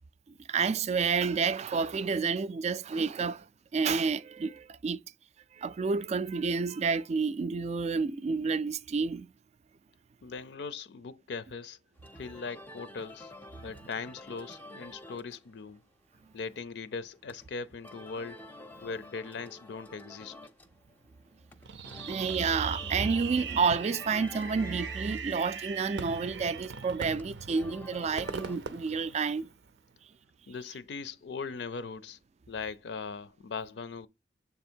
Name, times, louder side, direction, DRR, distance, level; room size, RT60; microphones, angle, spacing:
voice 1, 0.5-3.5 3.7-5.0 5.5-9.3 22.1-29.5, right 5 dB, 40° right, 0.3 m, -29 dB
voice 2, 10.2-11.8 12.1-13.3 13.6-15.8 16.3-18.4 18.8-20.3 30.5-32.2 32.5-34.1, left 5 dB, 70° left, 0.4 m, -39 dB
sound 1, 11.9-28.6, left 1 dB, 10° left, 0.6 m, -50 dB
Fireworks, 21.7-29.8, right 6 dB, 80° right, 0.6 m, -40 dB
6.9 x 3.5 x 4.4 m
head